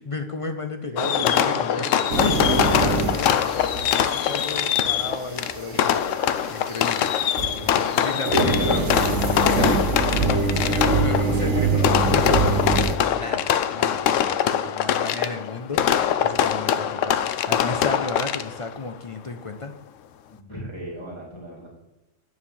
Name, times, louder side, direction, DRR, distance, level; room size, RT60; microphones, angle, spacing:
voice 1, 0.1-6.0 6.5-7.1 7.6-9.2 9.5-15.8 16.2-19.8, left 3 dB, 40° left, 6 dB, 0.4 m, -33 dB
Fireworks, 1.0-18.7, left 9 dB, 75° left, 0.9 m, -23 dB
voice 2, 1.0-1.9 2.2-3.0 7.3-8.9 20.3-21.7, right 1 dB, 20° left, -6 dB, 2.0 m, -36 dB
sound 1, 2.1-7.8 8.2-13.0, right 3 dB, 65° right, 1.4 m, -25 dB
10.0 x 4.1 x 7.0 m, 1.1 s
omnidirectional pair, 1.3 m